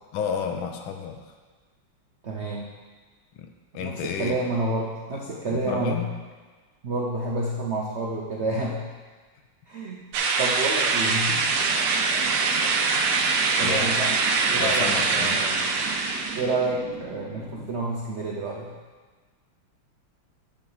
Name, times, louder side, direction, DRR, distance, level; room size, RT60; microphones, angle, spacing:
voice 1, 0.1-1.3 3.3-3.5 3.7-4.4 5.5-6.1 13.6-13.9 14.6-15.4, left 7 dB, 75° left, 4 dB, 1.5 m, -31 dB
voice 2, 2.2-2.7 3.8-6.1 6.8-8.9 9.7-10.0 10.4-11.6 13.6-14.1 14.5-15.7 16.3-18.7, right 2 dB, 65° right, -3 dB, 0.6 m, -29 dB
sound 1, 10.1-16.4, right 4 dB, 90° right, 1.7 m, -23 dB
sound 2, 11.5-17.7, right 5 dB, 50° right, 2.7 m, -39 dB
8.7 x 4.9 x 5.7 m, 1.4 s
omnidirectional pair, 2.3 m